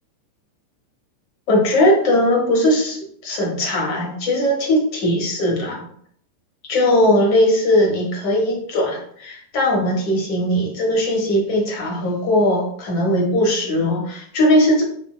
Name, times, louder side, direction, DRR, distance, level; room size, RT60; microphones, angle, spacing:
voice 1, 1.5-5.9 6.7-14.8, left 1 dB, 45° left, -1 dB, 0.9 m, -19 dB
3.6 x 2.7 x 2.2 m, 0.65 s
figure-of-eight pair, 90°, 0 cm